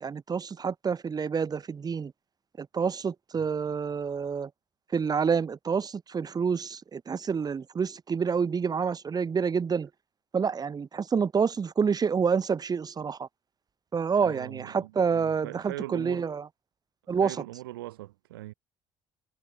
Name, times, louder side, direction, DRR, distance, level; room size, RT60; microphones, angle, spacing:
voice 1, 0.0-2.1 2.6-4.5 4.9-9.9 10.3-13.3 13.9-16.4 17.1-17.4, right 6 dB, 35° right, 1.3 m, -28 dB
voice 2, 14.2-16.3 17.2-18.5, right 17 dB, 80° right, 2.5 m, -41 dB
figure-of-eight pair, 55°, 12 cm